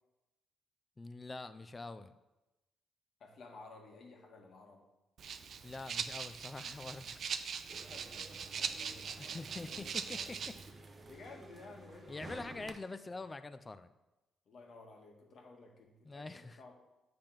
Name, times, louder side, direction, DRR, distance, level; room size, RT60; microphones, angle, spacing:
voice 1, 1.0-2.2 5.6-7.2 9.2-10.6 12.1-13.9 16.0-16.6, left 3 dB, 25° left, 12 dB, 0.4 m, -45 dB
voice 2, 3.2-4.9 7.9-9.4 9.6-10.4 11.0-12.8 13.0-13.2 14.4-16.7, left 3 dB, 60° left, 2 dB, 1.4 m, -55 dB
Rattle (instrument), 5.2-10.7, right 6 dB, 60° right, 0.5 m, -41 dB
sound 1, 7.7-12.7, right 2 dB, 30° right, 0.8 m, -53 dB
8.7 x 3.4 x 5.8 m, 1.0 s
cardioid pair, 90°, 0 cm